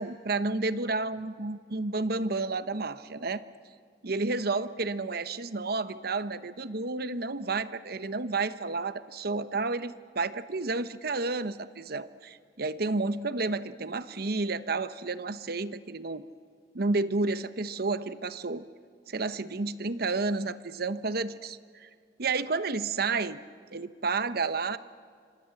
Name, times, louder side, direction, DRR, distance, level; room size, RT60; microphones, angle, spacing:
voice 1, 0.0-3.4 4.0-16.2 16.7-18.6 19.1-21.9 22.2-23.4 23.7-24.8, right 3 dB, 60° right, 13 dB, 0.9 m, -31 dB
26.5 x 25.5 x 7.6 m, 2.2 s
head